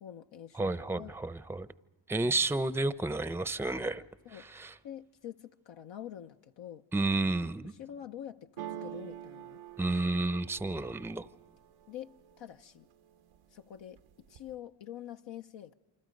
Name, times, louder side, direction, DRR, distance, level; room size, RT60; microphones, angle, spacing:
voice 1, 0.0-1.1 2.2-2.4 4.2-4.4 4.8-6.9 7.8-9.6 11.9-12.9 13.5-15.7, left 10 dB, 65° left, 0.7 m, -46 dB
voice 2, 0.5-1.7 2.1-4.0 4.3-4.7 6.9-7.7 9.8-11.3, right 2 dB, 5° right, 0.6 m, -31 dB
sound 1, 8.6-12.4 12.9-13.5 13.8-14.6, right 11 dB, 90° right, 0.9 m, -46 dB
28.0 x 25.0 x 5.2 m
supercardioid pair, 60°, 48 cm